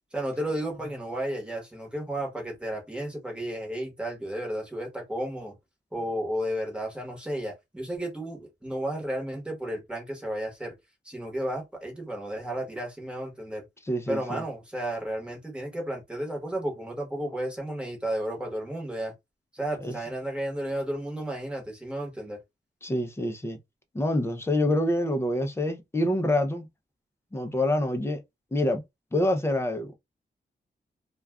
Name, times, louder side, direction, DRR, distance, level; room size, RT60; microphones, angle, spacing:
voice 1, 0.1-5.6 5.9-10.7 11.0-13.7 14.1-19.1 19.5-22.4, right 1 dB, 5° right, 1.1 m, -33 dB
voice 2, 13.9-14.4 19.8-19.9 22.8-23.6 23.9-26.7 27.3-28.2 28.5-28.8 29.1-29.9, left 1 dB, 15° left, 0.5 m, -26 dB
2.3 x 2.2 x 3.4 m
wide cardioid pair, 150°, 19 cm